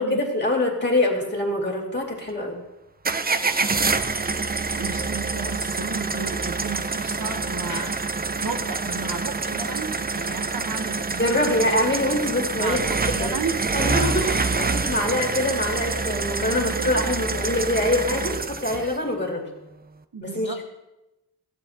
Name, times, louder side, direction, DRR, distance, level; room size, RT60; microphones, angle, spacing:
voice 1, 0.0-2.6 7.7-7.9 11.2-12.8 13.2-13.4 13.7-19.4 20.2-20.6, left 1 dB, 25° left, 0 dB, 2.4 m, -24 dB
sound 1, 3.0-19.0, right 4 dB, 20° right, 0.5 m, -26 dB
voice 2, 4.7-11.6 12.6-13.7 16.5-17.2 20.1-20.6, right 4 dB, 55° right, 4 dB, 1.0 m, -34 dB
15.5 x 7.3 x 2.8 m, 0.97 s
wide cardioid pair, 55°, 42 cm